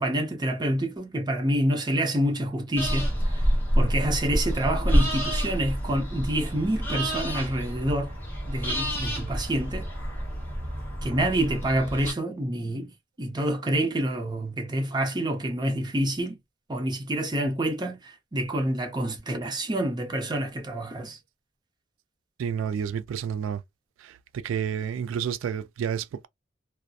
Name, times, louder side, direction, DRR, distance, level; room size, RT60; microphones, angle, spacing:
voice 1, 0.0-3.4 3.8-8.1 8.4-9.9 11.0-12.9 13.2-16.4 16.7-21.2, right 1 dB, 20° right, 0.6 m, -27 dB
sound 1, 2.8-12.1, equal, 10° left, 1.1 m, -28 dB
voice 2, 22.4-23.6 24.0-26.3, right 8 dB, 75° right, 0.3 m, -30 dB
2.6 x 2.1 x 2.3 m
head